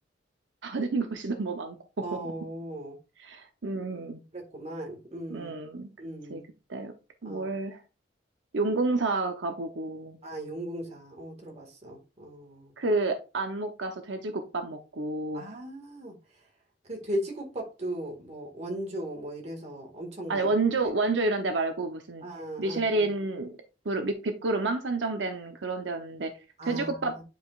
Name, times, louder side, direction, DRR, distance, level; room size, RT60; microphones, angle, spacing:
voice 1, 0.6-2.2 3.2-4.2 5.3-5.9 6.3-6.4 6.7-6.9 7.2-7.8 8.5-10.2 12.8-15.4 20.3-22.3 22.6-23.5 23.8-26.3 26.6-27.1, right 3 dB, 80° right, 0.8 m, -29 dB
voice 2, 2.0-3.0 4.3-5.5 6.0-6.5 7.2-7.4 10.2-12.7 15.3-16.2 16.9-20.5 22.2-23.0 26.6-27.0, right 1 dB, 35° right, 1.9 m, -37 dB
9.2 x 5.0 x 2.4 m
head